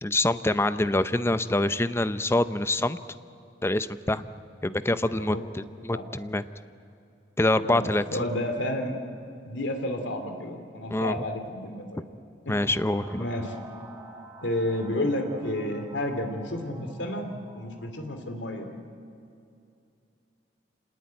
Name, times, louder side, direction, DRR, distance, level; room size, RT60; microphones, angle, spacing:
voice 1, 0.0-3.0 3.6-4.3 4.6-6.4 7.4-8.0 10.9-11.1 12.5-13.2, left 1 dB, 15° left, 13 dB, 0.6 m, -25 dB
voice 2, 5.1-5.4 5.9-6.0 7.6-9.0 9.4-12.0 12.4-12.6 13.2-13.5 14.4-18.7, left 1 dB, 85° left, 5 dB, 2.7 m, -31 dB
sound 1, 12.6-18.7, right 2 dB, 20° right, 2.5 m, -49 dB
27.0 x 19.5 x 9.5 m, 2.6 s
head